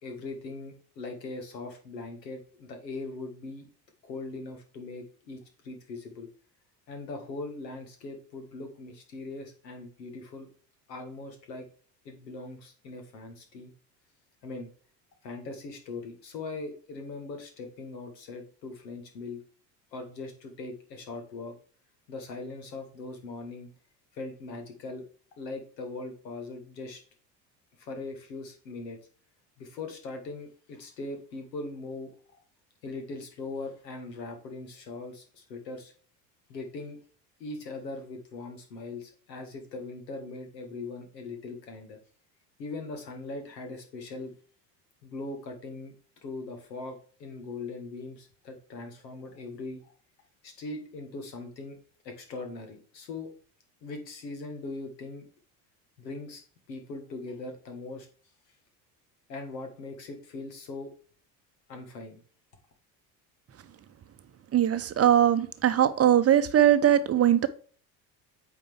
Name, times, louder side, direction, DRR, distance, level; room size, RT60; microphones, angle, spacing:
voice 1, 0.0-3.7 4.0-6.3 6.9-10.5 10.9-11.7 12.0-13.7 14.4-14.7 15.2-19.4 19.9-21.5 22.1-23.7 24.1-25.0 25.4-27.0 27.8-29.0 29.6-32.1 32.8-35.9 36.5-37.0 37.4-42.0 42.6-44.3 45.0-45.9 46.2-49.9 50.4-51.8 52.0-53.3 53.8-55.2 56.0-56.4 56.7-58.1 59.3-60.9 61.7-62.2, left 3 dB, 85° left, 4 dB, 1.8 m, -40 dB
voice 2, 64.5-67.5, right 10 dB, 30° right, 11 dB, 0.7 m, -21 dB
8.7 x 4.4 x 3.5 m, 0.43 s
hypercardioid pair, 70°, 49 cm